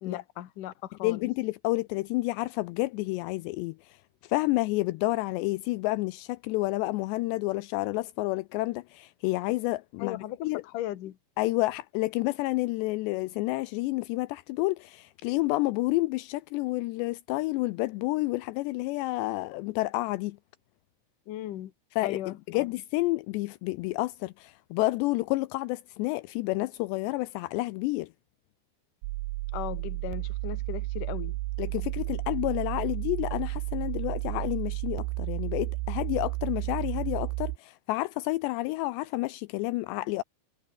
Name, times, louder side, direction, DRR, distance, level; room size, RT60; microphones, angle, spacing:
voice 1, 0.0-1.3 10.0-11.2 21.3-21.7 22.0-22.7 29.5-31.4, left 13 dB, 60° left, 2.3 m, -37 dB
voice 2, 1.0-4.0 4.2-10.6 11.4-20.4 22.0-28.1 31.6-40.2, left 20 dB, 85° left, 2.5 m, -30 dB
sound 1, 29.0-37.6, right 22 dB, 90° right, 2.4 m, -32 dB
omnidirectional pair, 5.6 m